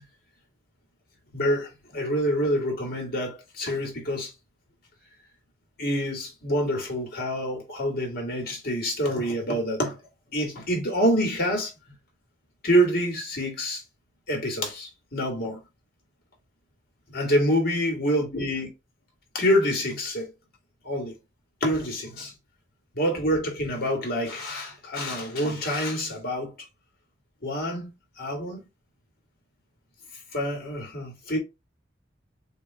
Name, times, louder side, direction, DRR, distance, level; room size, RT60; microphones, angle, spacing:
voice 1, 1.3-4.3 5.8-9.9 10.3-11.7 12.6-13.8 14.3-15.6 17.1-18.7 19.3-20.3 20.8-21.1 21.6-22.3 22.9-26.5 27.4-27.9 28.2-28.6 30.3-31.4, equal, 55° left, 2.0 m, -26 dB
6.8 x 2.6 x 2.3 m
head